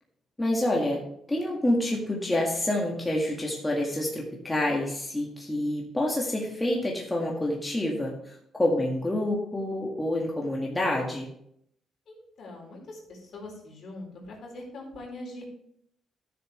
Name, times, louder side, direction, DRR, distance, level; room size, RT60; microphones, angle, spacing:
voice 1, 0.4-1.0 1.3-11.3, left 1 dB, 15° left, -2 dB, 1.9 m, -28 dB
voice 2, 12.1-15.5, left 2 dB, 60° left, -1 dB, 4.2 m, -42 dB
12.0 x 6.9 x 3.3 m, 0.71 s
cardioid pair, 90°, 0 cm